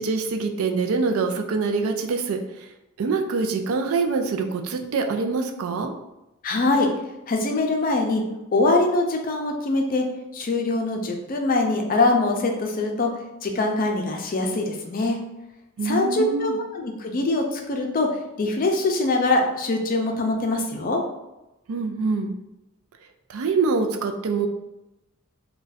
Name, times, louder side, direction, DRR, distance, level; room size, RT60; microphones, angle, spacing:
voice 1, 0.0-2.4 3.0-5.9 15.8-16.6 21.7-22.3 23.3-24.5, right 4 dB, 75° right, 5 dB, 0.4 m, -25 dB
voice 2, 6.4-6.9 7.3-8.2 8.5-10.0 10.3-13.1 13.4-15.2 15.8-18.1 18.4-21.0, left 2 dB, 40° left, 3 dB, 0.5 m, -23 dB
2.4 x 2.2 x 4.0 m, 0.93 s
head